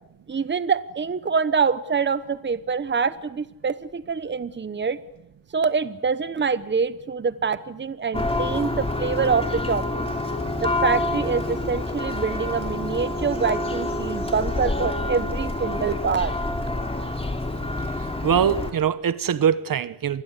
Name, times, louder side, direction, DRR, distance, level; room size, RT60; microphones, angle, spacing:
voice 1, 0.3-5.0 5.5-10.0 10.6-16.3, right 5 dB, 35° right, 1.0 m, -25 dB
Church bell, 8.1-18.7, left 2 dB, 15° left, 2.8 m, -27 dB
voice 2, 18.2-20.2, right 8 dB, 75° right, 1.1 m, -22 dB
26.5 x 20.5 x 8.2 m
wide cardioid pair, 125°, 34 cm